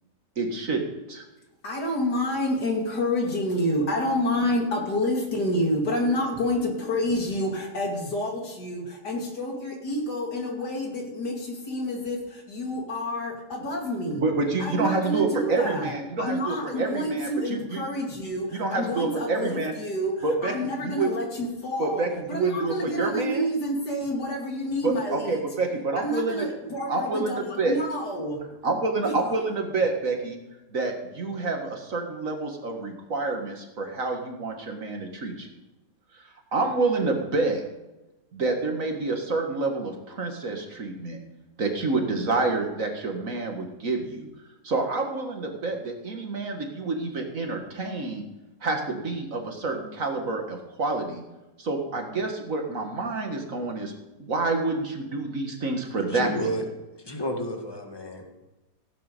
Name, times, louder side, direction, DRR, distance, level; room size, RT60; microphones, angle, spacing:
voice 1, 0.4-0.8 1.1-1.2 4.4-4.5 14.1-17.8 18.5-19.7 20.2-21.1 21.8-23.5 24.8-26.5 26.9-27.8 28.6-30.4 30.7-35.5 36.5-37.6 38.3-41.2 41.6-44.3 44.6-48.2 48.6-51.2 51.6-53.9 54.2-56.5, right 3 dB, 50° right, 3 dB, 2.0 m, -28 dB
voice 2, 1.6-14.2 14.6-15.9 16.2-22.0 22.3-25.4 26.0-28.4 29.0-29.1, left 1 dB, 75° left, 0 dB, 3.3 m, -28 dB
voice 3, 56.1-56.6 57.0-58.3, equal, 15° left, 2 dB, 1.9 m, -31 dB
16.5 x 8.9 x 5.3 m, 1.0 s
omnidirectional pair, 1.8 m